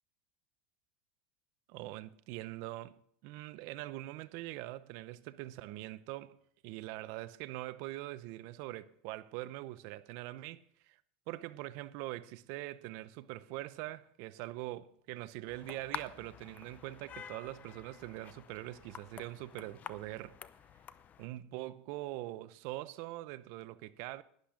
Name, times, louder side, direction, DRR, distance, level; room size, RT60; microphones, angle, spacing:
voice 1, 1.7-6.4 6.6-11.0 11.3-20.4 21.2-24.2, right 17 dB, 60° right, 0.7 m, -43 dB
sound 1, 15.5-21.3, left 8 dB, 30° left, 0.6 m, -49 dB
11.5 x 10.5 x 5.1 m
supercardioid pair, 135°, 5 cm